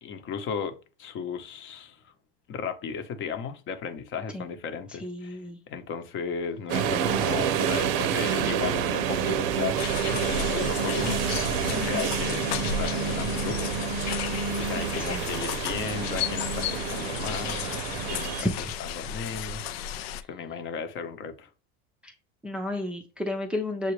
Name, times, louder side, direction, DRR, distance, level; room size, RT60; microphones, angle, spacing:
voice 1, 0.0-2.1 2.5-5.4 5.7-11.2 11.6-14.2 14.5-19.6 20.3-21.5, left 6 dB, 40° left, 0.8 m, -35 dB
voice 2, 5.0-5.6 11.7-12.1 14.8-15.2 18.4-18.7 22.0-22.1 22.4-23.9, left 2 dB, 5° right, 0.5 m, -32 dB
sound 1, 6.7-18.4, right 7 dB, 70° right, 0.7 m, -28 dB
sound 2, 9.8-20.2, left 8 dB, 85° left, 0.5 m, -34 dB
6.9 x 2.4 x 3.1 m
supercardioid pair, 115°, 30 cm